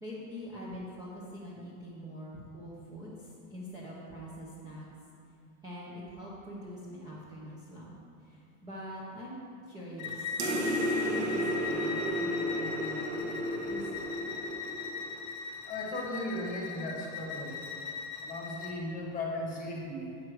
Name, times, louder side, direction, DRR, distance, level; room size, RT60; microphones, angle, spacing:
voice 1, 0.0-4.9 5.6-9.4 9.7-10.2 10.4-13.3 13.6-14.1, equal, 10° right, -7 dB, 0.6 m, -44 dB
Bowed string instrument, 10.0-18.8, left 6 dB, 45° left, 0.9 m, -39 dB
sound 1, 10.4-15.3, equal, 45° right, 1.0 m, -33 dB
voice 2, 15.6-17.6 18.2-20.2, left 1 dB, 20° left, -1 dB, 1.1 m, -37 dB
8.6 x 6.4 x 4.6 m, 2.5 s
supercardioid pair, 170°, 42 cm